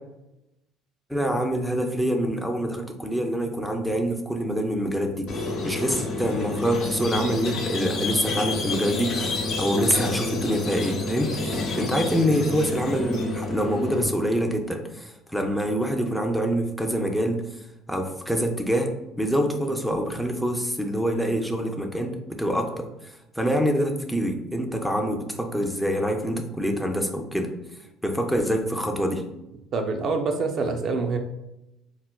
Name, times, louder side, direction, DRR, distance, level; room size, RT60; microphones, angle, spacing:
voice 1, 1.1-17.5 17.9-27.5 28.0-29.2, equal, ahead, 3 dB, 0.4 m, -26 dB
Squeak, 5.3-14.0, left 3 dB, 55° left, 0.8 m, -29 dB
voice 2, 29.7-31.2, right 4 dB, 50° right, 5 dB, 0.5 m, -26 dB
4.2 x 2.1 x 2.2 m, 0.90 s
supercardioid pair, 85°, 0 cm